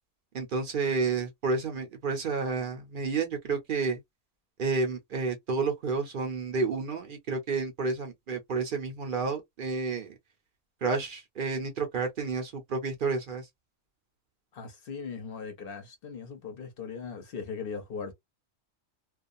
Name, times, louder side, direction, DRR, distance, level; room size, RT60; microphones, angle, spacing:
voice 1, 0.3-4.0 4.6-10.1 10.8-13.5, right 4 dB, 55° right, 0.6 m, -30 dB
voice 2, 14.5-18.1, left 5 dB, 55° left, 0.8 m, -39 dB
2.3 x 2.3 x 2.5 m
omnidirectional pair, 1.4 m